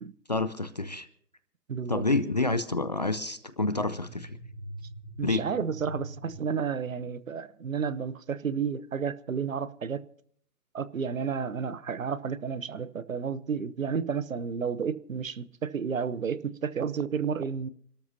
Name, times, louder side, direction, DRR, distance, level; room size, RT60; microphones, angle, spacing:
voice 1, 0.3-1.1 1.9-4.4 5.2-5.4, left 2 dB, 30° left, 0.6 m, -28 dB
voice 2, 1.7-2.1 5.2-10.0 10.7-17.7, right 6 dB, 55° right, 1.0 m, -31 dB
sound 1, 3.6-6.5, right 1 dB, 5° right, 1.1 m, -43 dB
28.5 x 13.0 x 2.8 m
figure-of-eight pair, 145°, 47 cm